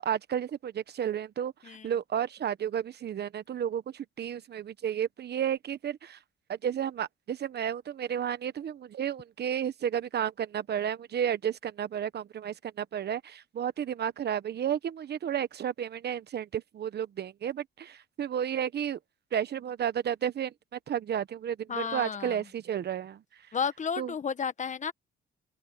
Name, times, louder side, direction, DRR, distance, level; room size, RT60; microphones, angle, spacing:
voice 1, 0.0-6.2 6.5-19.0 19.3-23.2 24.0-24.1, right 9 dB, 55° right, 1.2 m, -32 dB
voice 2, 21.7-22.4 23.5-24.9, left 6 dB, 40° left, 1.2 m, -32 dB
open air
cardioid pair, 90°, 20 cm